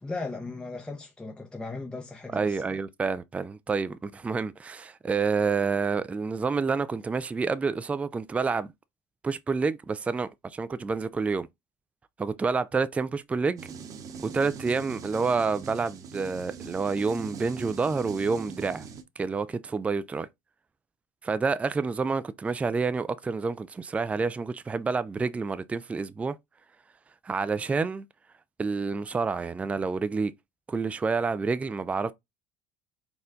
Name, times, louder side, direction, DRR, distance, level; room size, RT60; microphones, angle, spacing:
voice 1, 0.0-2.8, left 3 dB, 10° left, 0.7 m, -37 dB
voice 2, 2.3-8.7 9.2-11.5 12.2-13.7 14.2-18.9 19.2-20.3 21.2-26.4 27.2-28.0 28.6-30.3 30.7-32.1, right 4 dB, 15° right, 0.3 m, -28 dB
sound 1, 13.6-19.0, right 6 dB, 45° right, 0.9 m, -41 dB
4.3 x 2.2 x 3.8 m
supercardioid pair, 90°, 8 cm